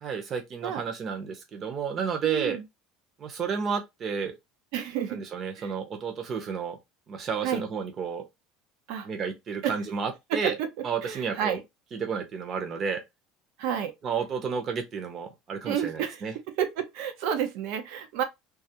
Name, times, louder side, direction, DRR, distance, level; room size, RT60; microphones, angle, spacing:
voice 1, 0.0-2.6 3.2-4.3 5.1-6.8 7.1-8.3 9.0-10.6 10.8-11.6 11.9-13.0 14.0-16.3, right 6 dB, 30° right, 0.6 m, -31 dB
voice 2, 2.2-2.6 4.7-5.2 5.6-5.7 7.4-7.6 8.9-9.1 9.6-9.8 10.3-10.7 11.0-11.6 13.6-13.9 15.6-16.2 16.6-18.2, right 9 dB, 70° right, 0.5 m, -30 dB
2.4 x 2.4 x 2.7 m
cardioid pair, 155°, 0 cm